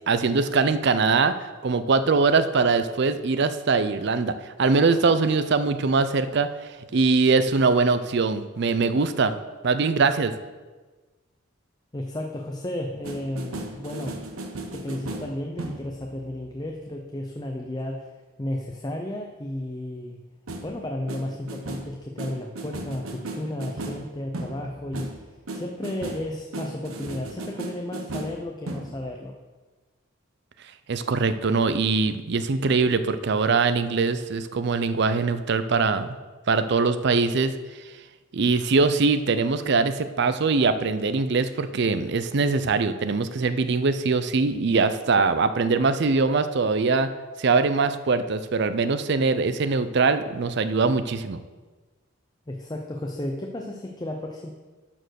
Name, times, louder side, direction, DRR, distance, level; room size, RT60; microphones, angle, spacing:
voice 1, 0.1-1.4 1.6-6.5 6.9-9.3 9.6-10.3 30.9-36.1 36.5-37.5 38.3-47.1 47.4-51.4, right 4 dB, 55° right, 11 dB, 0.5 m, -22 dB
voice 2, 11.9-14.2 14.7-18.1 18.4-20.2 20.6-25.3 25.5-29.3 52.5-54.5, left 1 dB, 20° left, 2 dB, 0.6 m, -33 dB
sound 1, 13.0-16.3 20.5-20.8 21.1-29.1, right 2 dB, 85° right, 1.1 m, -36 dB
11.0 x 4.5 x 6.4 m, 1.3 s
head